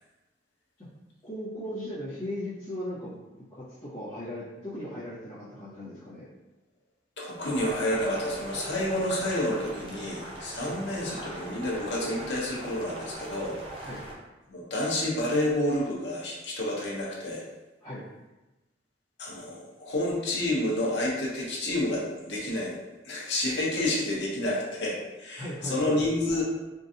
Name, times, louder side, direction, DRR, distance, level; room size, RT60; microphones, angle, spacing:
voice 1, 1.2-3.1 3.5-6.2 10.6-10.8 13.8-14.0 17.8-18.0 25.4-26.0, left 1 dB, 25° left, -14 dB, 1.0 m, -37 dB
voice 2, 7.2-13.9 14.5-17.4 19.2-22.8 23.0-26.4, left 1 dB, 65° left, -4 dB, 0.9 m, -29 dB
Boiling, 7.3-14.1, right 1 dB, 30° right, 0.6 m, -41 dB
3.8 x 2.6 x 2.7 m, 1.1 s
head